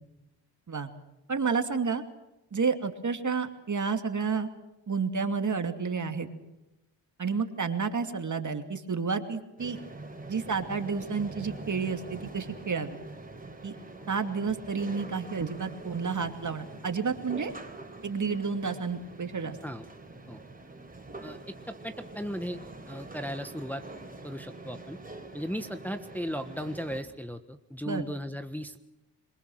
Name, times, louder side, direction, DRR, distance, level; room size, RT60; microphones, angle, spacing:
voice 1, 1.3-2.0 2.5-4.5 4.9-6.3 7.2-9.8 10.3-13.0 13.6-13.8 14.1-17.5 18.0-19.6 27.9-28.0, right 5 dB, 40° right, 7 dB, 2.6 m, -30 dB
sound 1, 9.6-27.0, right 2 dB, 20° right, 4.5 m, -45 dB
voice 2, 21.2-22.6 22.9-23.8 24.2-25.0 25.3-28.8, equal, 5° left, 7 dB, 1.3 m, -36 dB
27.0 x 22.5 x 6.4 m, 0.95 s
cardioid pair, 75°, 44 cm